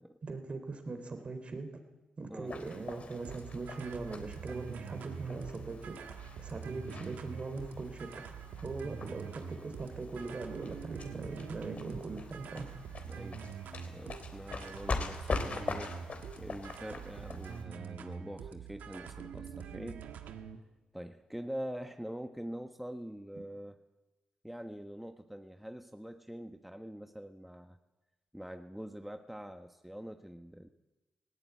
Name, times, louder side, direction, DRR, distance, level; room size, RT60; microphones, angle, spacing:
voice 1, 0.2-1.8 2.2-6.1 6.4-8.1 8.6-12.7, right 3 dB, 45° right, 8 dB, 3.8 m, -40 dB
sound 1, 2.5-17.6, left 4 dB, 55° left, 3.5 m, -43 dB
sound 2, 3.3-20.6, right 7 dB, 85° right, 1.6 m, -45 dB
voice 2, 13.0-13.5 13.8-16.0 16.4-20.1 20.9-23.8 24.4-27.8 28.3-30.7, equal, 5° right, 6 dB, 1.3 m, -44 dB
19.0 x 17.0 x 9.3 m, 1.1 s
cardioid pair, 65°, 3 cm